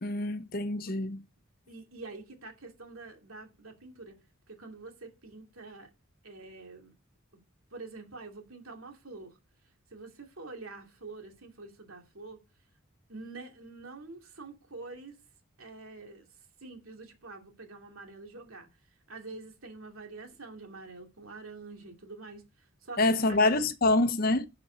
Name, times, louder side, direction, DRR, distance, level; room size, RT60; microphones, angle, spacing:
voice 1, 0.0-1.2 23.0-24.5, left 2 dB, 45° left, 0.8 m, -26 dB
voice 2, 1.7-4.2 4.5-5.9 6.2-6.9 7.7-9.4 9.9-12.4 13.1-15.2 15.6-16.3 16.6-18.7 19.1-23.0 23.3-23.4, right 3 dB, 85° right, 2.6 m, -46 dB
11.5 x 6.3 x 4.0 m
head